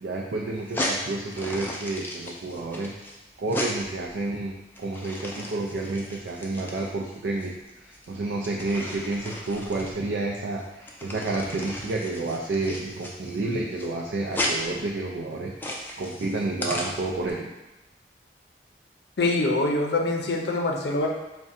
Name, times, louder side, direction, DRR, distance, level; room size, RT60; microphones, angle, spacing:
voice 1, 0.0-2.9 3.4-4.5 4.8-7.5 7.8-15.5 16.0-17.5, right 2 dB, 80° right, -1 dB, 0.4 m, -30 dB
sound 1, 0.5-17.3, left 1 dB, 10° left, 0.4 m, -35 dB
voice 2, 19.2-21.1, left 2 dB, 70° left, 1 dB, 0.5 m, -24 dB
3.6 x 2.2 x 4.1 m, 1.0 s
head